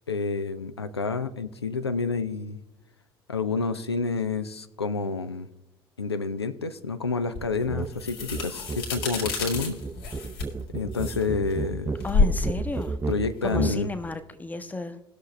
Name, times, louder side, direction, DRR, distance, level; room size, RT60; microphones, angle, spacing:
voice 1, 0.1-2.6 3.3-5.5 6.0-9.8 10.7-11.9 13.1-13.9, left 4 dB, 85° left, 11 dB, 0.5 m, -29 dB
sound 1, 7.4-14.1, left 3 dB, 70° left, 1.9 m, -30 dB
sound 2, 7.7-7.9 8.2-13.8, right 3 dB, 20° right, 0.6 m, -32 dB
voice 2, 12.0-13.0 13.4-15.0, left 3 dB, 10° left, 11 dB, 0.9 m, -33 dB
19.0 x 6.6 x 3.3 m, 0.91 s
figure-of-eight pair, 60°, 13 cm